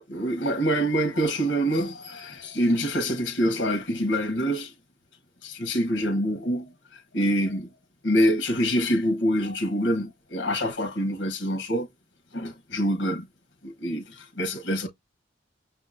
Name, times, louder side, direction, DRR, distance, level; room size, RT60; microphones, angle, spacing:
voice 1, 0.0-4.7 5.4-6.7 7.1-7.7 8.0-11.9 12.3-13.2 13.6-14.9, equal, 70° left, 0.9 m, -25 dB
5.9 x 2.8 x 2.5 m
head